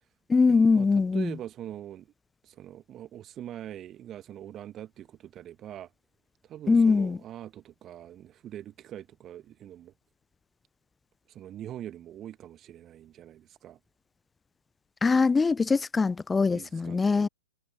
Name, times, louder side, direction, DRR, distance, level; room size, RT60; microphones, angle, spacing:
voice 1, 0.3-1.3 6.7-7.2 15.0-17.3, left 4 dB, 10° left, 0.7 m, -22 dB
voice 2, 1.1-2.1 2.4-5.9 6.4-9.9 11.3-13.8 16.5-17.3, right 11 dB, 25° right, 1.9 m, -43 dB
figure-of-eight pair, 110°, 0 cm